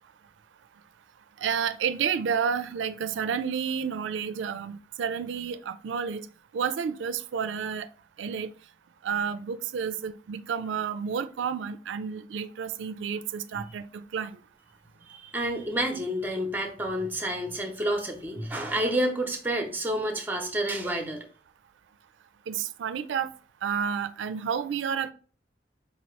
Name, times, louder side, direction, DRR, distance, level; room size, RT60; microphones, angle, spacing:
voice 1, 1.4-6.3 6.5-7.9 8.2-8.5 9.0-14.3 22.5-23.3 23.6-25.1, right 7 dB, 85° right, 0.4 m, -30 dB
voice 2, 15.3-21.2, right 1 dB, 10° right, 0.7 m, -29 dB
4.8 x 2.8 x 3.1 m
head